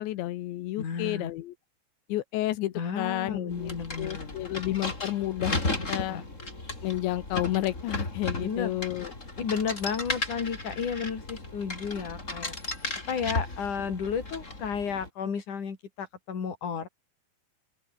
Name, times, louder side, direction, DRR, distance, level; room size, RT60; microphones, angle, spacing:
voice 1, 0.0-1.6 2.1-5.6 5.9-6.2 6.8-9.1, left 15 dB, 85° left, 3.6 m, -31 dB
voice 2, 0.8-1.3 2.8-4.5 5.9-6.2 8.4-8.7 9.4-12.6 13.1-16.9, left 6 dB, 45° left, 5.3 m, -33 dB
sound 1, 3.5-15.1, left 2 dB, 15° left, 4.8 m, -35 dB
open air
omnidirectional pair, 5.0 m